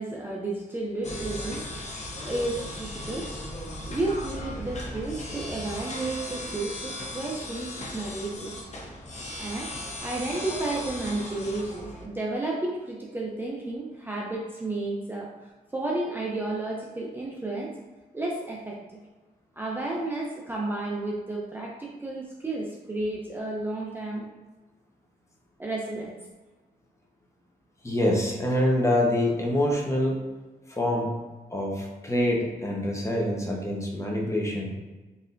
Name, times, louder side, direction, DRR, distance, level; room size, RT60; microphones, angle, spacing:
voice 1, 0.0-3.3 3.8-8.6 9.4-9.7 10.0-17.7 18.1-18.8 19.6-24.3 25.6-26.1, right 2 dB, 10° right, -3 dB, 0.6 m, -32 dB
sound 1, 1.0-12.0, left 1 dB, 45° left, 0.8 m, -37 dB
voice 2, 27.8-30.2 30.7-31.1 31.5-34.7, left 1 dB, 15° left, -2 dB, 0.9 m, -25 dB
4.1 x 3.4 x 2.6 m, 1.2 s
cardioid pair, 95°, 16 cm